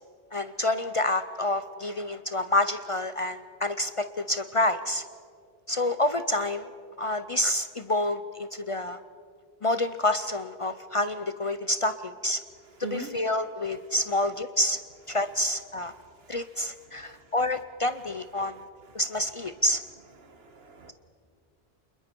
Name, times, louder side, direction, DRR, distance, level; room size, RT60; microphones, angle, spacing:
voice 1, 0.3-5.0 5.7-6.7 7.0-9.0 9.6-12.4 12.8-14.8 15.1-15.9 16.3-18.6 18.9-19.8, left 1 dB, 40° left, 11 dB, 0.5 m, -28 dB
voice 2, 16.0-16.4 16.9-17.3 20.2-20.9, right 2 dB, 75° right, 8 dB, 1.7 m, -41 dB
27.0 x 21.5 x 4.5 m, 2.2 s
omnidirectional pair, 1.0 m